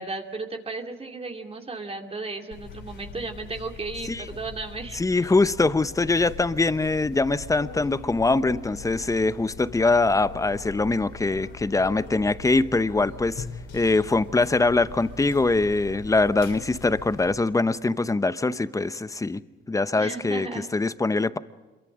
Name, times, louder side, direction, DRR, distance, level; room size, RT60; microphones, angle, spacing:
voice 1, 0.0-5.0 20.0-20.7, right 3 dB, 30° right, 4 dB, 2.5 m, -35 dB
sound 1, 2.5-17.3, left 4 dB, 65° left, 3.6 m, -41 dB
voice 2, 4.9-13.5 13.7-19.4 19.7-20.5 20.7-21.4, left 3 dB, 15° left, 14 dB, 0.9 m, -23 dB
26.5 x 23.0 x 6.3 m, 1.3 s
cardioid pair, 90°, 20 cm